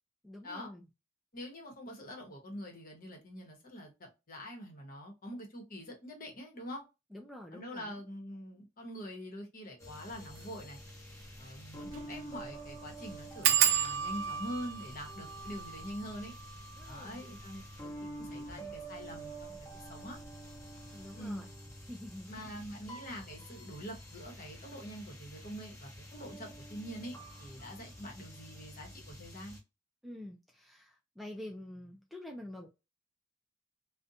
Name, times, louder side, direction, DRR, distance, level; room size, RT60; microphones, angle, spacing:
voice 1, 0.2-0.9 7.1-8.0 16.8-17.2 20.9-21.5 21.9-22.3 30.0-32.7, left 1 dB, ahead, 0.3 m, -47 dB
voice 2, 1.3-6.8 7.5-10.8 11.4-16.3 16.8-17.9 18.2-20.2 21.1-21.5 22.3-29.6, equal, 45° left, 1.0 m, -45 dB
sound 1, 9.8-29.6, right 1 dB, 15° left, 0.9 m, -48 dB
sound 2, 10.3-10.5 10.9-11.0 11.2-11.3 11.9-12.1 12.4-12.5 13.4-18.7 19.4-19.9 20.2-20.6 20.8-20.9, right 10 dB, 80° right, 0.4 m, -33 dB
2.5 x 2.1 x 2.7 m
head